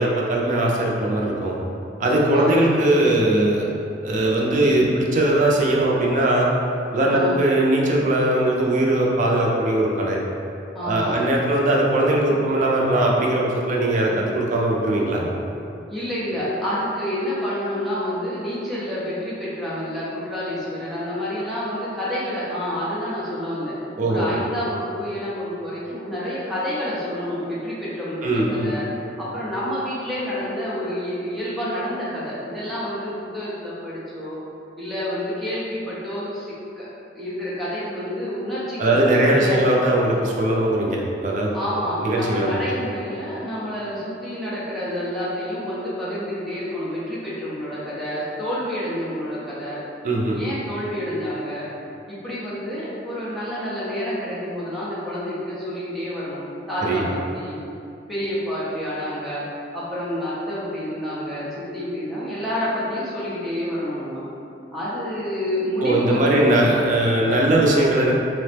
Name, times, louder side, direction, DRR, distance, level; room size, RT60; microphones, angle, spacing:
voice 1, 0.0-1.6 2.0-3.7 4.0-6.5 6.9-10.2 10.8-15.3 24.0-24.3 28.2-28.8 38.8-41.5 42.0-42.5 50.0-50.4 56.8-57.1 65.8-68.1, right 1 dB, 45° right, -2 dB, 0.4 m, -20 dB
voice 2, 2.3-2.8 7.1-7.4 10.7-11.2 15.9-23.7 24.0-28.9 29.2-34.4 34.8-36.9 37.1-39.8 41.5-49.8 50.3-51.6 52.1-57.6 58.1-59.4 59.7-61.5 61.7-64.2 64.7-66.5, equal, ahead, -10 dB, 0.6 m, -28 dB
2.9 x 2.0 x 3.2 m, 2.6 s
head